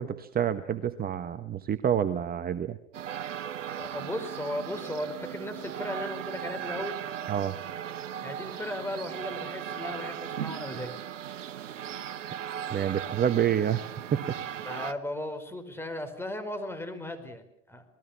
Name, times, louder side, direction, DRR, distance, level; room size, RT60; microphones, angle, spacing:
voice 1, 0.0-2.8 7.3-7.6 12.7-13.8 14.1-14.4, right 9 dB, 25° right, 11 dB, 1.2 m, -28 dB
sound 1, 2.9-14.9, right 9 dB, 85° right, 1.2 m, -37 dB
voice 2, 3.7-7.0 8.2-10.9 14.6-17.8, left 1 dB, 5° left, 7 dB, 4.8 m, -36 dB
27.5 x 20.0 x 7.3 m, 0.72 s
hypercardioid pair, 95°, 36 cm